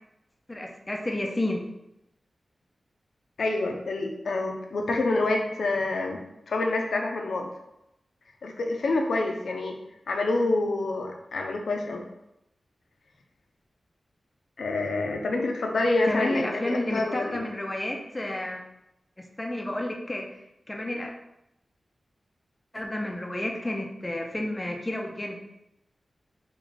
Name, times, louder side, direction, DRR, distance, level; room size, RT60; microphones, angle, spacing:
voice 1, 0.5-1.6 15.1-15.2 16.0-18.6 19.4-20.3 20.7-21.1 22.7-25.4, left 1 dB, 20° left, 1 dB, 0.4 m, -30 dB
voice 2, 3.4-6.2 6.5-7.5 8.4-9.8 10.1-12.0 14.6-17.5, left 2 dB, 80° left, 2 dB, 0.4 m, -27 dB
3.1 x 2.5 x 3.8 m, 0.86 s
wide cardioid pair, 130°, 0 cm